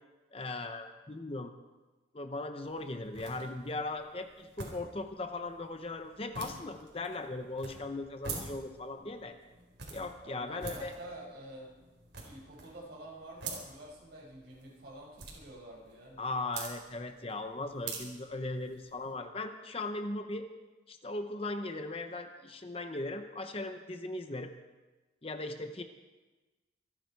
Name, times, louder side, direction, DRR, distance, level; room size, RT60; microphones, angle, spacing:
voice 1, 0.3-1.5 2.1-9.4 9.9-10.9 16.2-20.5 20.9-24.5 25.2-25.8, left 2 dB, 30° left, 7 dB, 0.8 m, -38 dB
sound 1, 2.6-19.1, right 4 dB, 75° right, 4.1 m, -47 dB
voice 2, 10.2-11.7 12.1-16.5, right 1 dB, 60° right, -4 dB, 5.8 m, -48 dB
26.5 x 10.0 x 4.6 m, 1.2 s
head